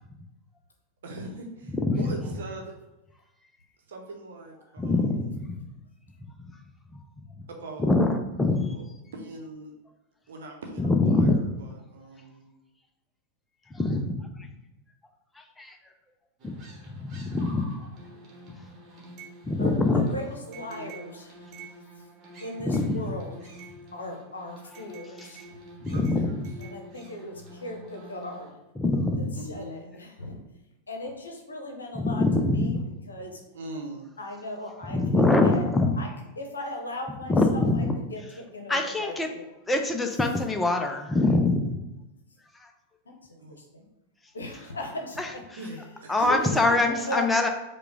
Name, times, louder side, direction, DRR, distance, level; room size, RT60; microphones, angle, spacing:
voice 1, 1.0-2.7 3.9-5.3 7.5-7.9 8.7-8.9 9.1-9.7 10.3-12.4 20.7-21.0 23.0-23.3 25.9-26.4 29.3-29.9 33.5-34.0 43.4-43.6 45.6-46.7, right 2 dB, 60° right, 2 dB, 0.9 m, -41 dB
voice 2, 1.8-2.2 4.8-5.6 7.8-8.7 10.8-11.5 13.7-14.3 15.6-15.8 16.4-16.6 17.0-17.9 19.5-20.0 22.6-23.2 25.8-26.5 28.8-29.4 31.9-32.8 34.9-36.0 37.3-37.9 38.7-39.3 39.7-41.7 45.2-45.3 46.1-47.5, left 2 dB, 10° left, 4 dB, 0.5 m, -24 dB
sound 1, 16.4-28.5, right 1 dB, 30° right, 1.1 m, -48 dB
voice 3, 19.6-21.3 22.4-23.5 23.9-25.6 26.6-28.6 29.1-30.4 30.9-33.4 34.2-35.7 36.0-36.1 36.4-39.5 43.1-43.8 44.3-45.4 45.7-45.8 46.2-47.3, left 1 dB, 75° left, 2 dB, 0.8 m, -38 dB
4.8 x 2.3 x 4.7 m, 0.98 s
figure-of-eight pair, 90°, 0 cm